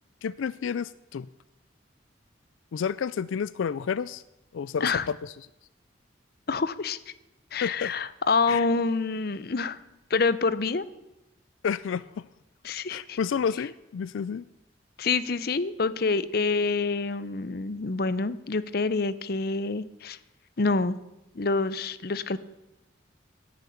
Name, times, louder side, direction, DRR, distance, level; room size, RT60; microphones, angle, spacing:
voice 1, 0.2-1.3 2.7-4.2 4.5-5.3 7.6-7.9 8.5-8.7 11.6-12.3 12.9-14.4, left 6 dB, 90° left, 18 dB, 0.4 m, -30 dB
voice 2, 6.5-7.0 7.5-9.8 10.1-10.9 12.6-13.2 15.0-20.2 20.6-21.0 21.4-22.4, left 4 dB, 50° left, 15 dB, 0.6 m, -27 dB
10.5 x 10.0 x 8.6 m, 0.93 s
head